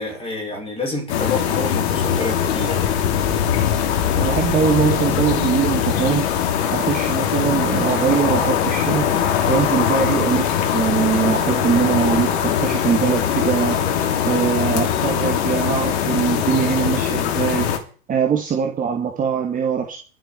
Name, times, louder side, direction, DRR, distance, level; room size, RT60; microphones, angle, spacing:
voice 1, 0.0-3.0, left 2 dB, 15° left, 6.8 m, -28 dB
sound 1, 1.1-17.8, left 9 dB, 50° left, 2.9 m, -21 dB
voice 2, 4.1-6.3 6.7-9.1 9.5-13.8 14.3-17.7 18.1-20.0, right 7 dB, 20° right, 2.0 m, -22 dB
23.0 x 7.9 x 4.6 m
figure-of-eight pair, 110°, 42 cm